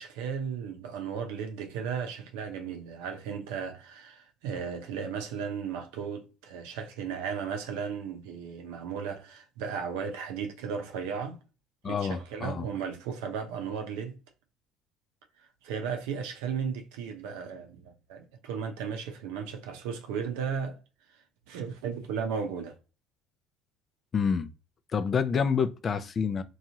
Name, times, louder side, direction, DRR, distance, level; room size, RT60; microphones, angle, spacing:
voice 1, 0.0-11.4 11.8-14.2 15.6-20.8 21.5-22.8, right 6 dB, 85° right, 0.6 m, -35 dB
voice 2, 11.8-12.7 24.1-24.5 24.9-26.4, left 6 dB, 35° left, 0.4 m, -28 dB
2.9 x 2.3 x 2.7 m
supercardioid pair, 100°, 0 cm